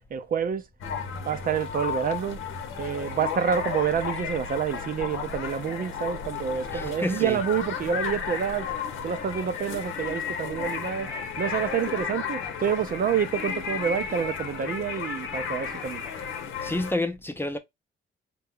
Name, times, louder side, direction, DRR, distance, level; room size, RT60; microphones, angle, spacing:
voice 1, 0.1-0.6 1.2-2.4 2.8-8.7 9.0-11.1 11.4-16.0, right 7 dB, 45° right, 0.5 m, -28 dB
sound 1, 0.8-16.9, left 6 dB, 85° left, 0.9 m, -33 dB
voice 2, 6.7-7.4 16.6-17.6, left 1 dB, 10° left, 0.6 m, -29 dB
4.2 x 2.3 x 3.5 m
cardioid pair, 90°, 20 cm